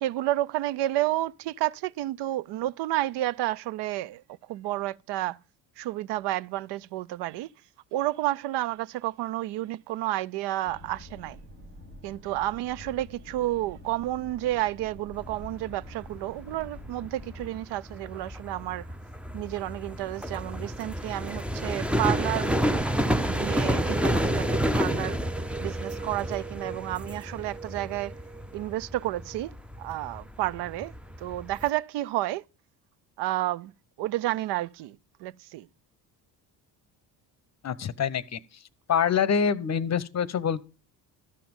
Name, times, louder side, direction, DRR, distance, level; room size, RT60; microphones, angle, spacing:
voice 1, 0.0-4.2 4.5-5.4 5.8-7.5 7.9-11.4 12.0-18.9 19.3-22.8 23.2-25.2 25.6-28.1 28.5-29.5 29.8-30.9 31.2-32.4 33.2-33.7 34.0-35.7, right 15 dB, 60° right, 0.5 m, -31 dB
sound 1, 10.6-17.6, equal, 90° right, 2.2 m, -47 dB
sound 2, 15.1-31.7, equal, ahead, 0.5 m, -30 dB
voice 2, 37.6-38.4 38.9-40.7, left 7 dB, 35° left, 0.8 m, -25 dB
12.5 x 5.9 x 5.4 m
hypercardioid pair, 60°, 49 cm